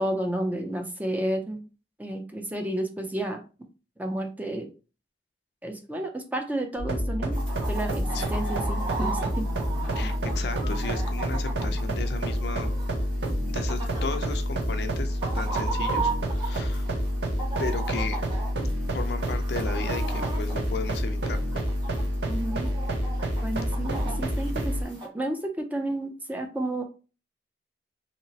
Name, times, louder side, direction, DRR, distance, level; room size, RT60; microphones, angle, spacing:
voice 1, 0.0-1.7 2.0-3.4 4.0-4.7 5.6-9.5 10.0-10.1 22.3-22.7 23.4-26.8, right 1 dB, 10° right, 4 dB, 0.4 m, -31 dB
sound 1, 6.8-24.8, equal, 75° right, 0.7 m, -28 dB
Chicken rooster, 7.3-25.1, right 4 dB, 25° right, 1.1 m, -37 dB
voice 2, 9.9-12.7 13.5-16.9 17.6-18.2 18.9-21.7, left 4 dB, 70° left, 8 dB, 0.4 m, -35 dB
2.9 x 2.8 x 2.7 m, 0.34 s
head